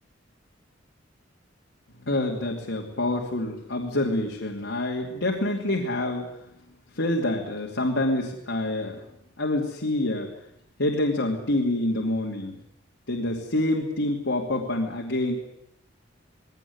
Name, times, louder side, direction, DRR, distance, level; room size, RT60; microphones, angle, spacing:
voice 1, 2.0-6.3 6.9-9.0 9.4-10.3 10.8-12.6 13.1-15.4, left 1 dB, 75° left, -1 dB, 2.7 m, -27 dB
20.0 x 17.5 x 9.6 m, 0.79 s
head